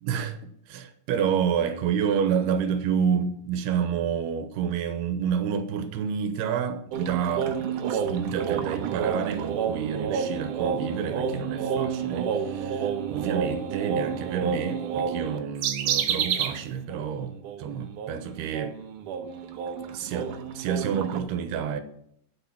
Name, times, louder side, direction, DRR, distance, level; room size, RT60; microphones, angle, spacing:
voice 1, 0.0-0.4 0.7-7.5 7.9-17.3 17.6-18.7 19.9-21.8, right 7 dB, 85° right, 3.0 m, -29 dB
sound 1, 6.9-16.6 16.9-17.1 17.4-21.2, right 7 dB, 70° right, 2.1 m, -29 dB
9.4 x 7.8 x 7.3 m
omnidirectional pair, 4.6 m